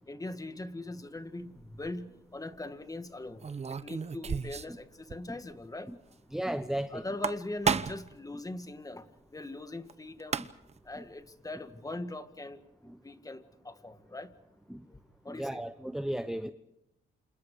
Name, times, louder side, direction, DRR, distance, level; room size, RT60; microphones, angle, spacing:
voice 1, 0.1-3.4 3.7-5.9 6.9-9.0 9.3-10.4 10.9-12.6 13.0-14.3 15.3-15.7, left 2 dB, 15° left, 1.9 m, -41 dB
sound 1, 1.6-1.9 3.4-4.8 5.1-5.2 5.5-5.6 7.0-8.1 9.9-10.0 10.2-10.8, right 6 dB, 35° right, 1.0 m, -32 dB
voice 2, 6.3-7.0 10.4-10.5 11.0-11.1 12.8-13.0 14.7-14.8 15.3-16.5, right 1 dB, ahead, 0.8 m, -35 dB
29.0 x 27.0 x 4.9 m
cardioid pair, 90°, 20 cm